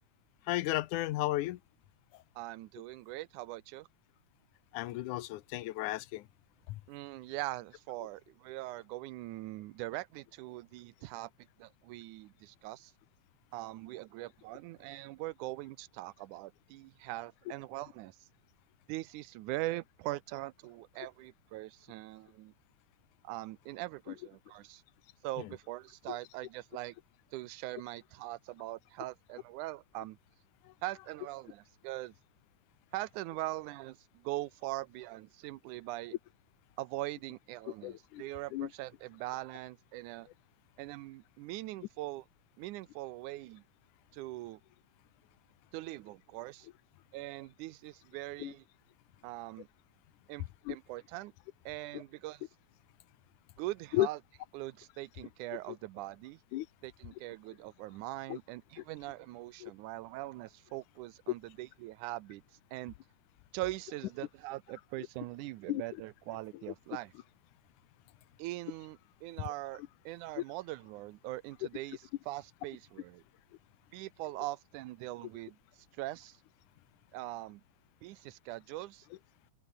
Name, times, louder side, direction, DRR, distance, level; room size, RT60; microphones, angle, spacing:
voice 1, 0.5-1.6 4.7-6.2 26.1-26.2 37.8-38.2 38.5-38.7 48.4-48.5 50.7-50.8 51.9-52.0 53.9-54.1 56.5-56.7 58.3-58.4 59.6-59.7 65.7-65.8, left 16 dB, 85° left, 2.3 m, -33 dB
voice 2, 2.4-3.9 6.9-12.9 13.5-18.2 18.9-22.5 23.2-24.8 25.2-27.0 27.3-30.2 30.8-32.2 32.9-36.2 36.8-40.3 40.8-42.3 42.6-43.6 44.1-44.6 45.7-46.7 47.1-48.7 49.2-49.7 50.3-51.3 51.7-52.5 53.6-54.2 54.5-56.4 56.8-62.4 62.7-63.0 63.5-67.1 68.4-73.2 73.9-75.6 76.0-76.4 77.1-77.6 78.0-79.1, right 17 dB, 80° right, 2.2 m, -42 dB
omnidirectional pair, 3.5 m